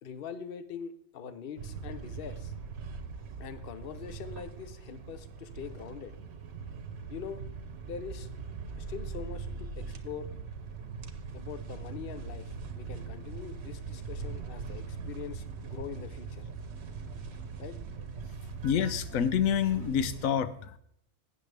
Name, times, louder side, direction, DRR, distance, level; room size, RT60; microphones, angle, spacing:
voice 1, 0.0-2.5 3.4-6.1 7.1-7.4 7.8-8.3 8.8-10.3 11.3-16.5 17.6-17.8, left 7 dB, 50° left, 12 dB, 0.9 m, -43 dB
sound 1, 1.6-20.3, right 5 dB, 60° right, 1.0 m, -41 dB
voice 2, 18.6-20.8, left 8 dB, 85° left, 14 dB, 1.1 m, -28 dB
12.5 x 8.8 x 3.4 m, 0.69 s
omnidirectional pair, 1.4 m